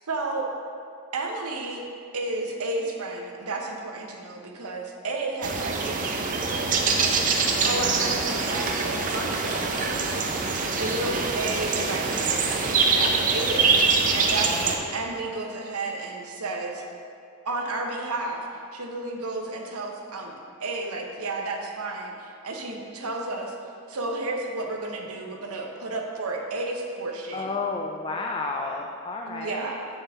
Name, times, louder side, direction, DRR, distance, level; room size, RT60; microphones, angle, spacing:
voice 1, 0.1-0.5 1.1-1.9 2.1-16.8 17.4-18.5 18.7-20.3 20.6-23.5 23.9-27.5 29.2-29.9, right 2 dB, 85° right, 2 dB, 0.8 m, -32 dB
sound 1, 5.4-14.8, right 4 dB, 35° right, 0.5 m, -24 dB
voice 2, 10.8-11.3 14.4-14.8 27.3-29.7, left 3 dB, 25° left, 1 dB, 0.3 m, -32 dB
7.4 x 5.4 x 3.5 m, 2.4 s
head